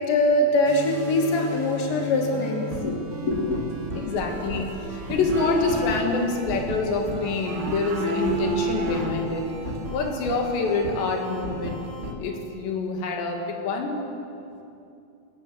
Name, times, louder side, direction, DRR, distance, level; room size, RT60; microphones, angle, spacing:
voice 1, 0.1-3.0 3.3-3.6, left 1 dB, 25° left, 0 dB, 2.5 m, -23 dB
sound 1, 0.6-12.1, equal, 30° right, 1.3 m, -35 dB
voice 2, 4.0-4.7 5.1-9.5 9.9-11.8 12.2-14.0, left 3 dB, 85° left, 3 dB, 4.4 m, -26 dB
sound 2, 4.1-10.1, right 2 dB, 75° right, 1.0 m, -32 dB
23.0 x 18.0 x 7.6 m, 2.7 s
omnidirectional pair, 4.9 m